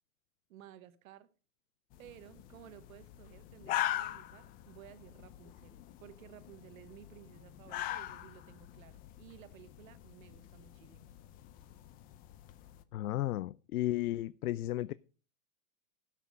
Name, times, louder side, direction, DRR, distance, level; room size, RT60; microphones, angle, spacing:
voice 1, 0.5-1.3 2.0-11.2, right 12 dB, 70° right, 1.2 m, -56 dB
sound 1, 1.9-12.8, left 13 dB, 20° left, 0.5 m, -42 dB
voice 2, 12.9-14.9, left 15 dB, 85° left, 0.6 m, -34 dB
12.0 x 6.0 x 6.4 m
hypercardioid pair, 140°, 43 cm